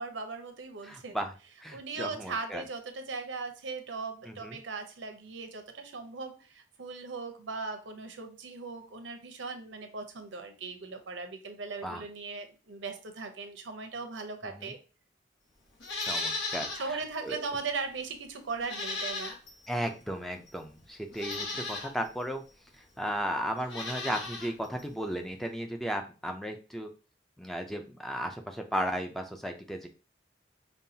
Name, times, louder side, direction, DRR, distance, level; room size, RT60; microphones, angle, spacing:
voice 1, 0.0-1.2 1.7-14.8 16.7-19.3, right 4 dB, 90° right, 6 dB, 0.7 m, -38 dB
voice 2, 0.8-1.3 1.6-2.6 4.3-4.6 11.8-12.0 14.4-14.7 16.1-17.4 19.7-22.4 23.0-26.9 27.4-29.9, equal, ahead, 4 dB, 0.3 m, -35 dB
Livestock farm animals working animals, 15.8-16.9 17.3-17.4 18.6-19.7 20.5-20.6 21.1-21.9 23.6-24.5 24.8-24.9, left 3 dB, 85° left, 1.1 m, -35 dB
5.3 x 2.3 x 2.7 m, 0.34 s
head